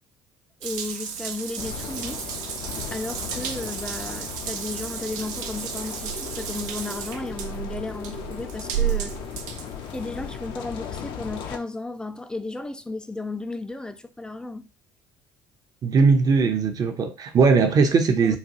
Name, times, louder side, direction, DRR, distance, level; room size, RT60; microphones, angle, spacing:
voice 1, 0.6-2.3 2.9-9.2 9.9-14.7 18.2-18.4, left 2 dB, 10° left, 0.5 m, -34 dB
Water tap faucet / Bathtub (filling or washing) / Drip, 0.6-10.5, right 9 dB, 80° right, 0.4 m, -33 dB
sound 1, 1.6-11.6, left 8 dB, 60° left, 0.5 m, -37 dB
voice 2, 15.8-18.4, right 4 dB, 40° right, 0.7 m, -19 dB
3.9 x 2.2 x 2.9 m
hypercardioid pair, 60°, 9 cm